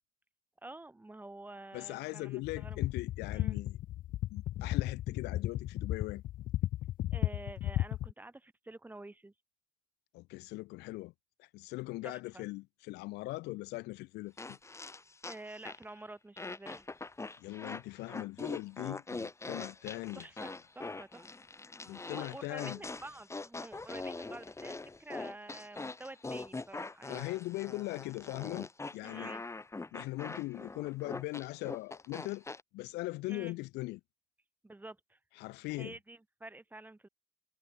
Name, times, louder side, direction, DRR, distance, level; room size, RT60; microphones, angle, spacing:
voice 1, 0.6-2.9 3.3-3.6 7.1-9.3 12.0-12.5 15.2-16.8 20.1-21.4 21.8-27.2 29.0-29.4 33.3-33.6 34.6-35.2 35.8-37.1, right 2 dB, 10° right, 2.8 m, -49 dB
voice 2, 1.7-3.8 4.3-6.2 10.1-11.1 11.4-14.6 17.4-20.2 21.9-22.8 27.1-29.3 29.9-32.4 32.7-34.0 35.4-35.9, left 21 dB, 90° left, 1.3 m, -40 dB
sound 1, 2.4-8.1, left 14 dB, 55° left, 0.4 m, -34 dB
sound 2, 14.4-16.0 16.4-32.6, left 3 dB, 15° left, 2.7 m, -43 dB
cardioid pair, 110°, 17 cm